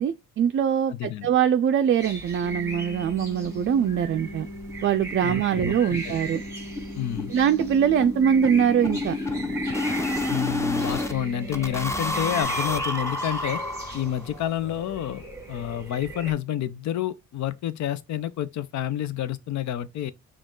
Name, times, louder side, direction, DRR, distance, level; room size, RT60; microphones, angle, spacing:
voice 1, 0.0-4.5 4.8-6.4 7.3-9.2, right 8 dB, 45° right, 0.4 m, -23 dB
voice 2, 0.9-1.3 5.2-5.7 6.0-6.1 6.9-7.3 10.3-13.6 13.9-20.1, left 11 dB, 70° left, 0.6 m, -29 dB
sound 1, 2.0-16.3, right 2 dB, 10° right, 1.5 m, -39 dB
sound 2, 2.4-12.4, equal, 30° left, 1.9 m, -39 dB
sound 3, 4.3-4.4 4.7-4.8 5.1-5.2 5.5-5.7 5.9-11.1 11.5-14.3, left 2 dB, 10° left, 0.7 m, -30 dB
5.0 x 2.4 x 3.7 m
cardioid pair, 90°, 30 cm